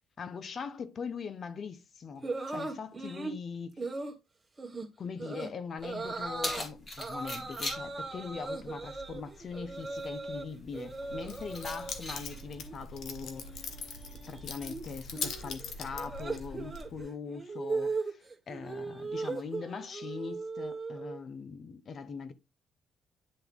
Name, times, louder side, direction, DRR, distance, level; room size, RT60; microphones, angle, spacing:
voice 1, 0.2-3.8 5.0-13.7 14.3-22.3, left 5 dB, 50° left, 0.9 m, -41 dB
sound 1, 2.2-3.4 3.8-4.1 4.6-4.9 5.2-5.5 5.8-6.6 7.0-10.4 10.7-12.0 12.3-12.8 13.0-21.2, right 3 dB, 20° right, 1.6 m, -38 dB
Keys jangling, 5.8-16.8, left 1 dB, 30° left, 2.3 m, -45 dB
Keys jangling 2, 11.0-17.0, left 5 dB, 70° left, 1.2 m, -42 dB
9.9 x 3.5 x 3.5 m
cardioid pair, 90°, 0 cm